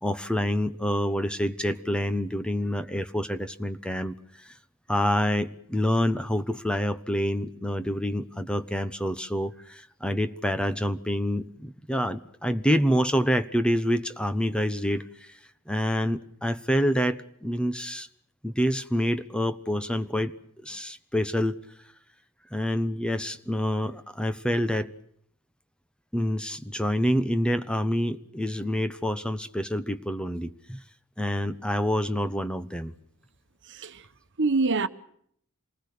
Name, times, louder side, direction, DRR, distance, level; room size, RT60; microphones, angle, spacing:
voice 1, 0.0-4.6 4.9-15.4 15.7-18.1 18.4-20.3 20.6-21.6 22.5-24.9 26.1-30.8 31.2-32.9, equal, 5° left, 1.0 m, -27 dB
voice 2, 33.6-34.1 34.4-34.9, right 3 dB, 55° right, 1.3 m, -25 dB
27.5 x 20.5 x 6.8 m
head